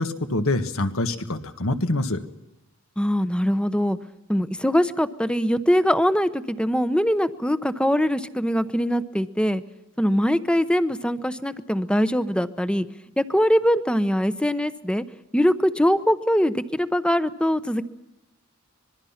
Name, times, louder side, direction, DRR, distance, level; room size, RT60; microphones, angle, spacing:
voice 1, 0.0-2.2, left 2 dB, 70° left, 8 dB, 1.7 m, -25 dB
voice 2, 3.0-4.0 4.3-9.6 10.0-12.9 13.2-15.0 15.3-17.8, equal, 5° left, 12 dB, 0.9 m, -22 dB
25.5 x 22.0 x 5.8 m, 0.95 s
head